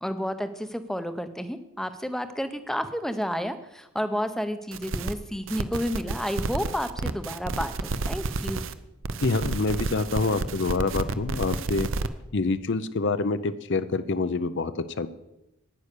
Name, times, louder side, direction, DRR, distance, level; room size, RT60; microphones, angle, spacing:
voice 1, 0.0-8.6, equal, ahead, 10 dB, 0.6 m, -31 dB
sound 1, 4.7-5.1 5.5-8.7 9.0-12.1, right 3 dB, 60° right, 0.7 m, -31 dB
voice 2, 9.2-11.9 12.3-14.7 15.0-15.1, left 3 dB, 55° left, 13 dB, 0.6 m, -26 dB
9.8 x 9.6 x 6.7 m, 0.89 s
head